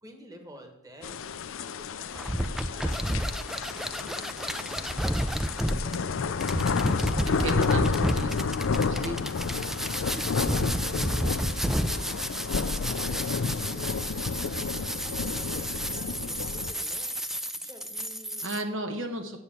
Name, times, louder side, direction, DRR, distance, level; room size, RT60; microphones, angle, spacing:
voice 1, 0.0-6.6 6.9-9.1 9.7-17.4 17.6-18.5, right 1 dB, 20° right, 4 dB, 1.5 m, -50 dB
sound 1, 1.0-16.7, left 5 dB, 75° left, 0.5 m, -31 dB
sound 2, 2.1-18.6, equal, ahead, 0.4 m, -31 dB
voice 2, 7.3-9.2 18.4-19.4, right 2 dB, 65° right, 5 dB, 1.1 m, -34 dB
8.4 x 7.1 x 7.9 m, 0.83 s
head